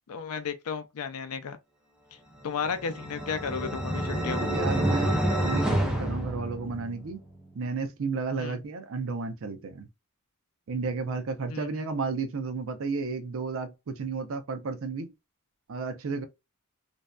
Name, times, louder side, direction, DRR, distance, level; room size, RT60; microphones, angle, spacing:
voice 1, 0.1-1.6 2.4-4.5 8.4-8.6 11.5-11.8, left 6 dB, 85° left, 0.5 m, -33 dB
sound 1, 2.5-7.1, right 1 dB, 5° right, 0.4 m, -28 dB
voice 2, 4.5-5.2 5.4-7.2 7.6-9.9 10.7-15.1 15.7-16.2, right 4 dB, 65° right, 0.5 m, -32 dB
2.6 x 2.1 x 2.2 m
head